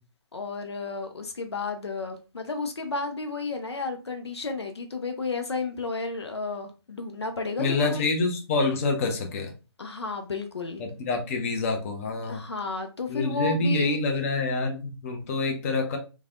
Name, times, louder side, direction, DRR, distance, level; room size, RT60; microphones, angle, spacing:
voice 1, 0.3-8.1 9.8-10.8 12.2-14.2, left 3 dB, 75° left, 6 dB, 0.6 m, -32 dB
voice 2, 7.6-9.5 10.8-12.4 13.1-16.0, left 3 dB, 30° left, 3 dB, 0.7 m, -27 dB
3.2 x 2.2 x 2.4 m, 0.31 s
figure-of-eight pair, 140°, 14 cm